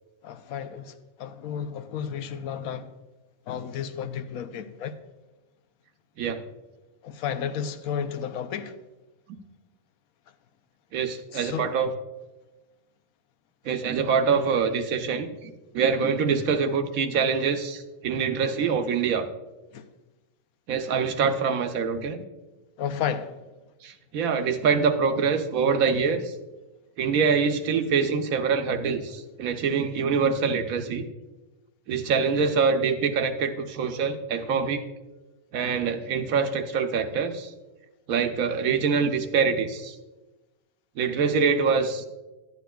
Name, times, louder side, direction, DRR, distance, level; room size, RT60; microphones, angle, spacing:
voice 1, 0.2-0.9 1.2-2.9 3.5-4.9 7.0-8.7 11.3-11.7 19.7-19.8 22.8-23.4, left 8 dB, 80° left, 1.0 m, -32 dB
voice 2, 10.9-11.9 13.7-19.2 20.7-22.2 23.8-26.3 27.0-31.1 31.9-34.8 35.5-37.5 38.1-39.9 41.0-42.1, right 5 dB, 80° right, 1.2 m, -25 dB
12.0 x 9.5 x 2.3 m
omnidirectional pair, 1.5 m